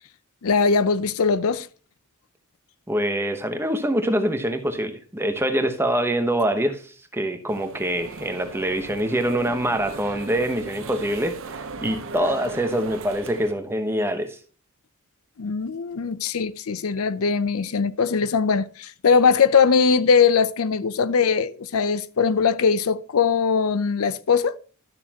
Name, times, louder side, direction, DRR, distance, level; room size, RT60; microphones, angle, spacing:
voice 1, 0.4-1.7 15.4-24.6, left 5 dB, 70° left, 0.5 m, -21 dB
voice 2, 2.9-6.8 7.1-14.4, right 1 dB, 10° right, 1.0 m, -25 dB
sound 1, 7.5-13.5, right 3 dB, 60° right, 0.9 m, -38 dB
12.5 x 6.7 x 2.9 m
head